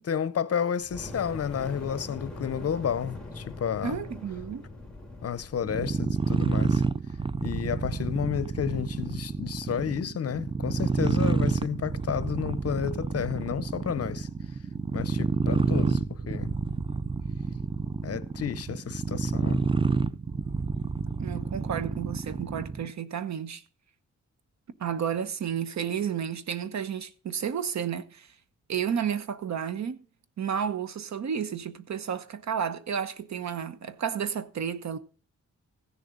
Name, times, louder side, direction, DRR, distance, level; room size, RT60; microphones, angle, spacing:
voice 1, 0.0-4.0 5.2-6.8 7.4-14.3 14.9-16.5 18.0-19.6, left 8 dB, 55° left, 0.7 m, -31 dB
Fire, 0.8-6.1, left 2 dB, 5° left, 2.5 m, -41 dB
voice 2, 3.8-4.7 21.2-23.6 24.8-28.3 28.7-30.0 30.4-35.0, right 8 dB, 70° right, 0.9 m, -31 dB
sound 1, 5.6-22.9, right 4 dB, 20° right, 0.4 m, -29 dB
15.5 x 6.9 x 3.8 m
cardioid pair, 95°, 29 cm